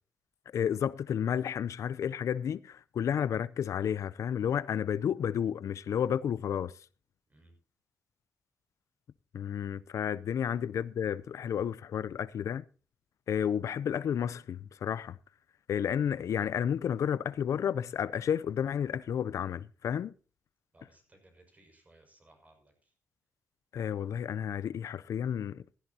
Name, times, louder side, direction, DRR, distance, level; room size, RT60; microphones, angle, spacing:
voice 1, 0.5-6.7 9.3-12.6 13.3-15.1 15.7-20.1 23.7-25.6, left 8 dB, 70° left, 0.5 m, -31 dB
voice 2, 20.7-22.9, right 2 dB, 25° right, 6.2 m, -62 dB
15.5 x 15.5 x 2.9 m
wide cardioid pair, 125°, 5 cm